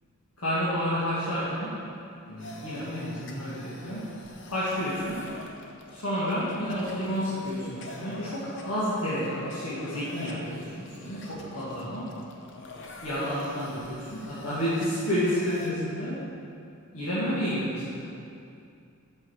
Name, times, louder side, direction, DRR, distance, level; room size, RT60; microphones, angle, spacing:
voice 1, 0.4-1.8 2.3-4.1 4.5-5.3 5.9-12.1 13.0-16.2 16.9-18.1, equal, 90° left, -11 dB, 2.0 m, -30 dB
sound 1, 2.4-15.7, left 1 dB, 55° left, 0.9 m, -45 dB
8.2 x 5.7 x 6.4 m, 2.5 s
head